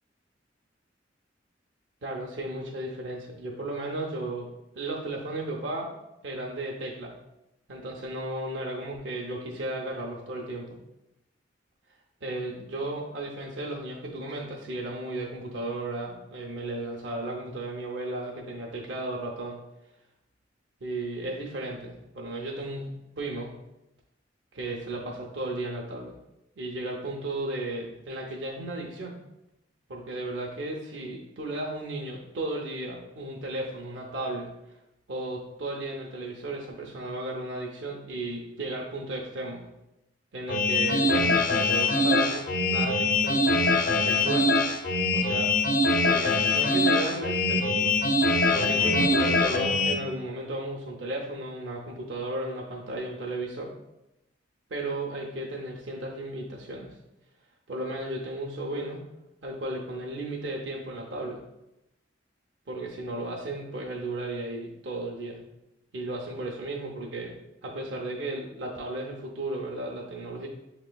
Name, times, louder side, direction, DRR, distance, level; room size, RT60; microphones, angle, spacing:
voice 1, 2.0-4.5 4.7-5.9 6.2-7.2 7.7-10.8 12.2-19.6 20.8-22.9 23.2-23.5 24.5-26.1 26.6-29.2 29.9-34.5 35.1-39.7 40.3-43.5 44.0-44.5 45.1-45.6 46.0-48.0 48.5-53.7 54.7-57.0 57.7-59.0 59.4-61.4 62.7-65.4 65.9-67.4 67.6-70.5, right 2 dB, 75° right, -2 dB, 0.7 m, -34 dB
sound 1, 40.5-49.9, left 2 dB, 45° left, 0.5 m, -23 dB
7.4 x 2.9 x 2.2 m, 0.91 s
head